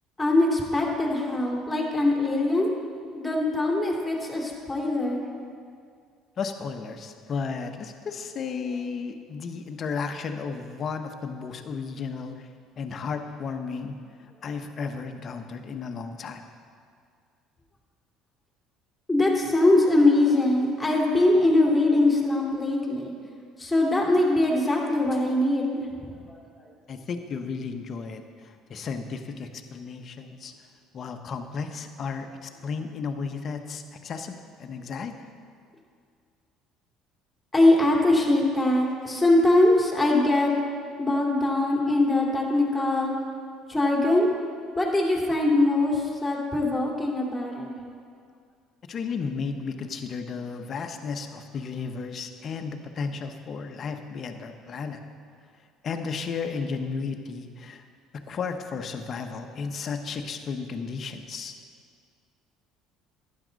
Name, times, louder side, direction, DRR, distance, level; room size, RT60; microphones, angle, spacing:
voice 1, 0.2-2.7 3.1-5.2 19.1-23.1 23.6-26.4 37.5-40.5 41.0-43.1 43.7-44.3 44.8-47.7, left 2 dB, 10° left, -2 dB, 2.8 m, -22 dB
voice 2, 6.4-12.5 12.8-14.0 14.4-16.4 26.9-30.5 30.9-35.1 48.9-55.0 55.8-57.8 58.1-61.5, left 5 dB, 45° left, 6 dB, 1.0 m, -34 dB
12.0 x 9.8 x 4.0 m, 2.2 s
hypercardioid pair, 70°, 0 cm